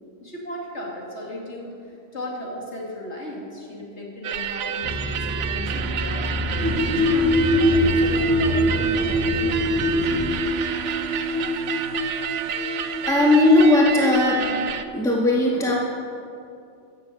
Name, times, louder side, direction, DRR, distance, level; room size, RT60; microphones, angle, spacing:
voice 1, 0.2-1.7 2.1-6.5 6.9-10.3, left 1 dB, 65° left, -3 dB, 3.0 m, -35 dB
sound 1, 4.2-14.8, right 8 dB, 80° right, 1.0 m, -29 dB
sound 2, 4.8-10.4, left 1 dB, 15° right, 0.8 m, -29 dB
sound 3, 6.6-13.6, left 1 dB, 45° right, 2.1 m, -24 dB
voice 2, 13.0-14.4 14.9-15.7, left 2 dB, 5° left, -4 dB, 1.7 m, -17 dB
14.5 x 7.5 x 8.5 m, 2.5 s
omnidirectional pair, 1.2 m